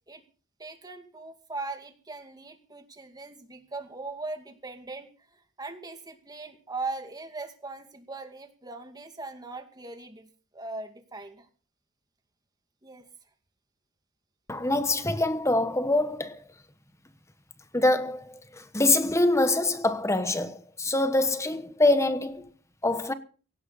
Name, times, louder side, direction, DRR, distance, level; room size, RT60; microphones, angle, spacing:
voice 1, 0.6-10.3 10.5-11.5 12.8-13.0, right 3 dB, 20° right, 2.3 m, -39 dB
voice 2, 14.5-16.4 17.7-22.5 22.8-23.1, left 2 dB, 15° left, 1.1 m, -25 dB
17.0 x 16.5 x 4.1 m
head